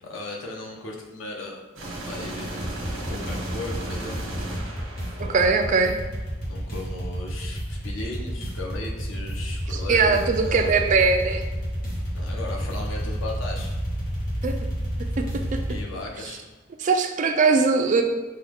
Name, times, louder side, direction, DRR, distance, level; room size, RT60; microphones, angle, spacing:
voice 1, 0.0-1.6 2.1-2.7 2.9-4.2 5.0-5.6 6.5-10.7 12.1-13.7 15.7-16.4, left 2 dB, 80° left, 0 dB, 0.9 m, -36 dB
sound 1, 1.8-5.8, right 1 dB, 85° right, 1.2 m, -35 dB
sound 2, 2.4-15.8, equal, 50° left, 1.3 m, -30 dB
voice 2, 5.2-5.9 9.9-11.4 14.4-14.5 15.2-15.3 15.5-15.6 16.8-18.0, right 4 dB, 40° right, 5 dB, 0.4 m, -20 dB
5.5 x 2.3 x 3.5 m, 1.2 s
head